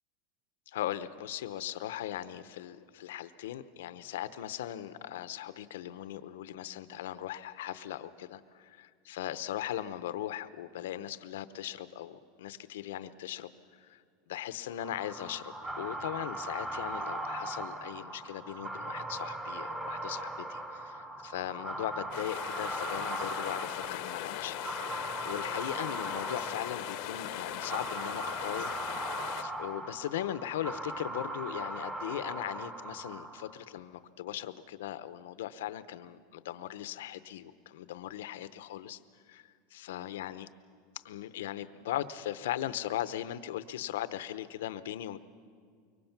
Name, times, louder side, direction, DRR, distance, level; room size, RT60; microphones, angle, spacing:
voice 1, 0.7-14.0 14.3-24.6 25.0-28.7 29.1-39.0 39.3-40.5 41.0-45.2, left 12 dB, 90° left, 13 dB, 0.8 m, -39 dB
sound 1, 14.8-33.7, right 2 dB, 10° right, 1.0 m, -39 dB
sound 2, 22.1-29.4, left 15 dB, 50° left, 0.7 m, -39 dB
24.5 x 23.5 x 6.0 m, 2.1 s
supercardioid pair, 165°, 0 cm